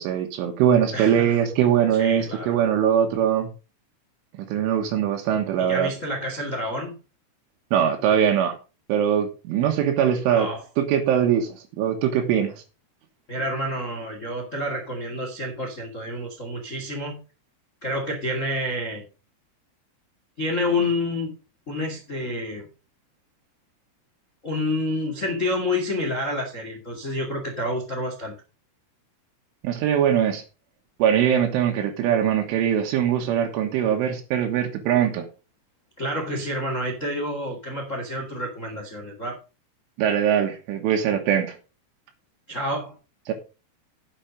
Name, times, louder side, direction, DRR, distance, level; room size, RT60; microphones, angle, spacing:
voice 1, 0.0-3.5 4.5-5.9 7.7-8.6 8.9-10.5 10.8-12.5 29.6-30.4 31.0-35.3 40.0-41.6 43.3-43.4, right 9 dB, 80° right, 4 dB, 3.9 m, -22 dB
voice 2, 0.9-1.4 1.9-2.6 5.6-6.9 10.3-10.6 13.3-17.2 17.8-19.1 20.4-21.3 21.7-22.7 24.4-28.3 36.0-39.4 42.5-42.9, left 1 dB, 70° left, 2 dB, 0.7 m, -28 dB
10.5 x 7.3 x 5.2 m, 0.32 s
omnidirectional pair, 5.6 m